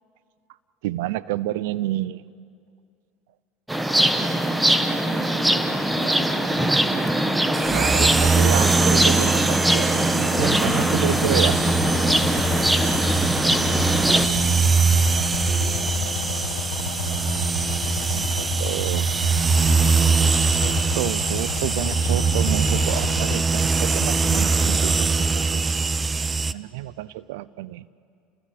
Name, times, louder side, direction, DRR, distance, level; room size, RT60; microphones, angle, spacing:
voice 1, 0.8-2.2 7.6-11.6 18.1-19.1 20.4-25.7 26.5-27.9, right 16 dB, 80° right, 19 dB, 0.6 m, -29 dB
sound 1, 3.7-14.3, right 1 dB, 5° right, 1.6 m, -21 dB
voice 2, 4.8-7.2 13.4-13.8 14.2-16.4 17.1-17.5, right 3 dB, 55° right, 2 dB, 4.8 m, -40 dB
sound 2, 7.5-26.5, right 4 dB, 20° right, 0.7 m, -22 dB
sound 3, 10.4-23.4, left 12 dB, 80° left, 1.2 m, -32 dB
29.5 x 20.0 x 7.8 m, 2.3 s
supercardioid pair, 90°, 0 cm